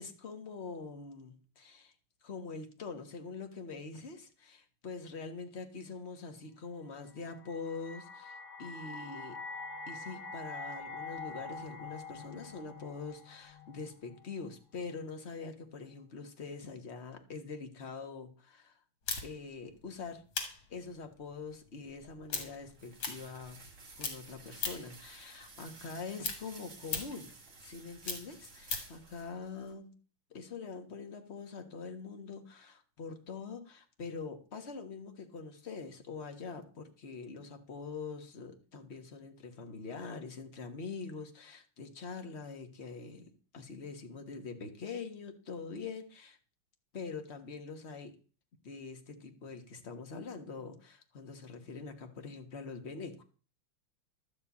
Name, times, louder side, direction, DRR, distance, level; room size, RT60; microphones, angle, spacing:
voice 1, 0.0-1.9 2.2-9.4 9.9-18.8 19.2-20.2 20.7-23.6 24.0-27.3 27.6-29.9 30.3-46.4 46.9-48.1 48.6-53.2, left 4 dB, 35° left, 5 dB, 1.6 m, -44 dB
sound 1, 7.3-14.4, left 3 dB, 80° left, 2.2 m, -45 dB
sound 2, 19.1-23.7 24.0-25.0 25.4-29.0, left 5 dB, 65° left, 2.8 m, -39 dB
sound 3, 21.9-29.7, right 3 dB, 35° right, 2.1 m, -54 dB
12.0 x 5.5 x 8.4 m, 0.38 s
omnidirectional pair, 2.4 m